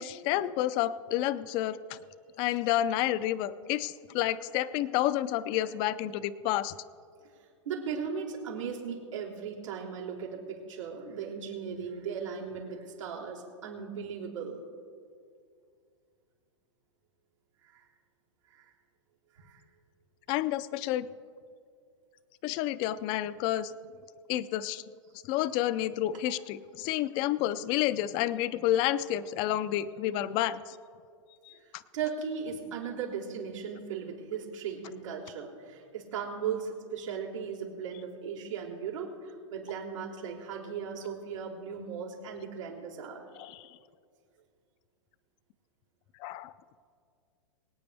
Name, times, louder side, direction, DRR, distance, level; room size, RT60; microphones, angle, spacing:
voice 1, 0.0-2.0 2.4-6.7 20.3-21.1 22.4-23.7 24.3-24.8 25.3-30.8 31.4-31.8 43.4-43.7 46.2-46.5, left 13 dB, 30° left, 15 dB, 0.4 m, -30 dB
voice 2, 7.6-14.6 17.6-17.9 18.5-18.7 19.3-19.6 31.5-43.2, right 6 dB, 85° right, -4 dB, 3.9 m, -37 dB
23.5 x 9.0 x 3.4 m, 2.2 s
hypercardioid pair, 150°, 16 cm